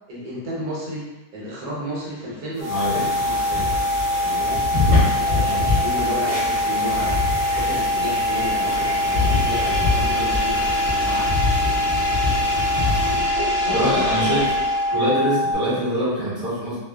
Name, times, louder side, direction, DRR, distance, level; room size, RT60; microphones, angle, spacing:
voice 1, 0.1-3.7 4.2-4.6 4.9-7.2 7.5-11.3 13.0-14.4, equal, 70° right, -6 dB, 1.1 m, -32 dB
sound 1, 2.6-15.6, left 1 dB, 40° left, 1.2 m, -23 dB
sound 2, 2.6-13.3, left 3 dB, 40° right, 0.7 m, -25 dB
voice 2, 2.7-3.1 5.4-5.6 11.7-11.8 13.7-14.5 14.9-16.8, equal, 15° left, -12 dB, 0.9 m, -24 dB
sound 3, 3.3-15.1, left 1 dB, 65° left, 1.0 m, -31 dB
2.8 x 2.0 x 2.2 m, 1.0 s
omnidirectional pair, 1.8 m